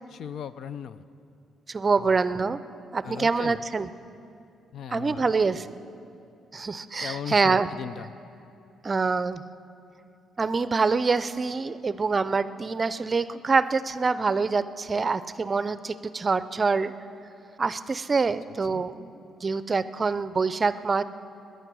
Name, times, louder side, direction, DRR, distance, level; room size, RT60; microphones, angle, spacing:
voice 1, 0.1-1.0 2.0-2.1 3.0-3.6 4.7-5.4 7.0-8.1 18.7-18.8, left 8 dB, 65° left, 14 dB, 0.5 m, -38 dB
voice 2, 1.7-2.6 2.9-3.9 4.9-5.7 6.5-7.7 8.8-9.4 10.4-16.9 17.6-21.0, right 4 dB, 30° right, 14 dB, 0.5 m, -25 dB
18.5 x 10.0 x 6.1 m, 2.6 s
cardioid pair, 90°, 0 cm